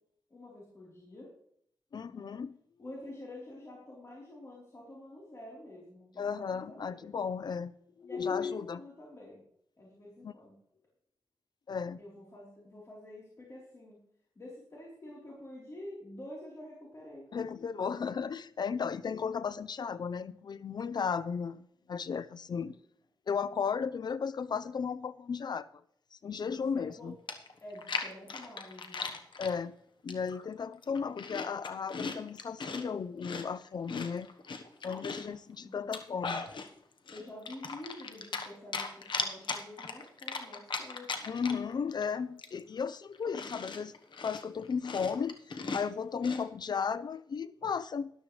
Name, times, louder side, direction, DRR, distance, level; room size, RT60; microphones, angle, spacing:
voice 1, 0.3-1.3 2.0-2.4 2.8-7.1 8.0-9.4 9.8-10.6 12.0-14.0 14.4-17.2 22.6-22.8 26.4-27.1 27.6-29.2 35.0-35.8 37.1-41.3, left 1 dB, 40° left, 3.7 m, -48 dB
voice 2, 1.9-2.5 6.2-7.7 8.0-8.8 10.2-10.3 11.7-12.0 17.3-22.7 23.3-25.7 26.1-27.1 29.4-29.7 30.0-34.3 34.8-36.5 41.3-43.9 44.2-48.1, left 6 dB, 65° left, 0.5 m, -35 dB
Chewing mastication, 26.9-27.0 27.3-29.5 30.1-30.4 30.8-32.8 33.2-35.3 35.8-36.7 37.1-38.5 38.7-41.7 42.0-42.1 42.4-46.4, left 4 dB, 80° left, 1.2 m, -38 dB
13.0 x 12.0 x 3.3 m
wide cardioid pair, 135°, 8 cm